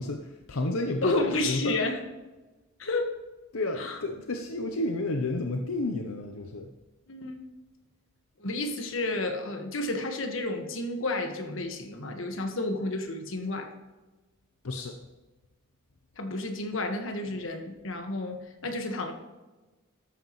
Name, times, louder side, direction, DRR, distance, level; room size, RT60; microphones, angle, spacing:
voice 1, 0.0-1.8 3.5-6.7 14.6-15.0, left 2 dB, 90° left, 4 dB, 0.8 m, -31 dB
voice 2, 1.0-2.0 2.8-3.1 3.8-4.0 7.1-7.4 8.4-13.7 16.2-19.1, left 2 dB, 65° left, 4 dB, 1.5 m, -31 dB
13.0 x 9.2 x 3.1 m, 1.2 s
head